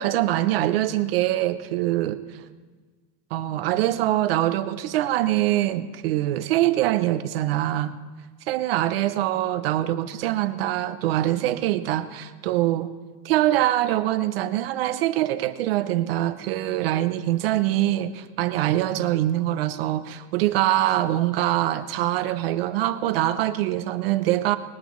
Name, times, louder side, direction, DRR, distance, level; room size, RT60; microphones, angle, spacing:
voice 1, 0.0-2.2 3.3-8.0 8.5-12.9 13.2-24.6, right 14 dB, 40° right, 11 dB, 0.4 m, -24 dB
20.5 x 18.5 x 3.0 m, 1.4 s
supercardioid pair, 175°, 49 cm